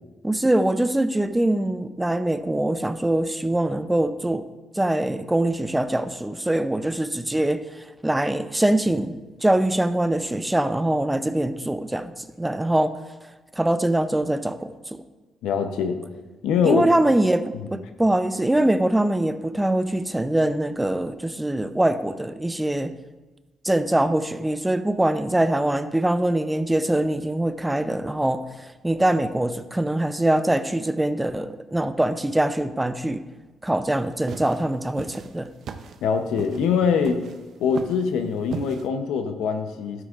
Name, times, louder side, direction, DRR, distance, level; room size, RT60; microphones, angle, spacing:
voice 1, 0.2-4.5 4.8-9.1 9.4-12.1 12.4-13.0 13.6-15.0 16.6-22.9 23.6-28.4 28.8-33.2 33.6-35.5, right 1 dB, 10° right, 11 dB, 0.5 m, -23 dB
voice 2, 15.4-16.0 16.4-16.8 17.5-17.7 36.0-37.2 37.6-40.0, left 6 dB, 90° left, 7 dB, 0.7 m, -23 dB
sound 1, 33.9-38.9, right 6 dB, 65° right, 0.6 m, -37 dB
12.0 x 9.5 x 2.5 m, 1.3 s
cardioid pair, 90°, 0 cm